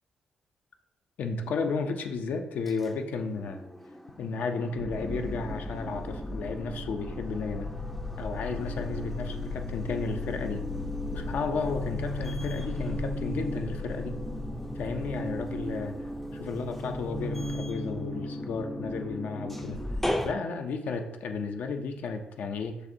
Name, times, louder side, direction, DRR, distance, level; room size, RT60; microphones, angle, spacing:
voice 1, 1.2-3.6 4.2-7.7 8.2-10.7 11.1-14.2 14.8-16.0 16.3-19.8 20.2-22.8, left 4 dB, 70° left, 6 dB, 0.5 m, -33 dB
sound 1, 3.3-4.1 4.4-20.3, left 1 dB, 5° left, 0.4 m, -35 dB
6.4 x 2.5 x 2.7 m, 0.93 s
cardioid pair, 70°, 3 cm